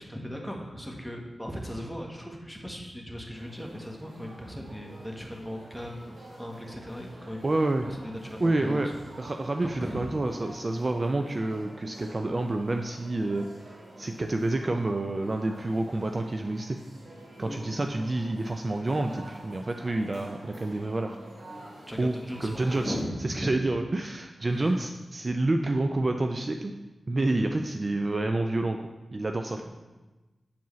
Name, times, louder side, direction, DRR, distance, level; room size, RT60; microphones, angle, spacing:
voice 1, 0.0-6.0 6.4-7.4 7.8-8.9 9.6-10.0 17.4-17.6 21.9-23.7 24.5-24.9 29.5-29.6, equal, ahead, 1 dB, 1.2 m, -38 dB
sound 1, 3.3-23.0, right 1 dB, 80° right, 1.2 m, -48 dB
voice 2, 7.4-7.9 8.4-8.9 9.2-13.5 14.0-16.8 17.4-21.2 22.0-22.1 22.4-23.0 23.2-26.8 27.1-28.8 29.1-29.6, right 2 dB, 45° right, 5 dB, 0.4 m, -28 dB
6.9 x 4.6 x 3.1 m, 1.1 s
cardioid pair, 45°, 0 cm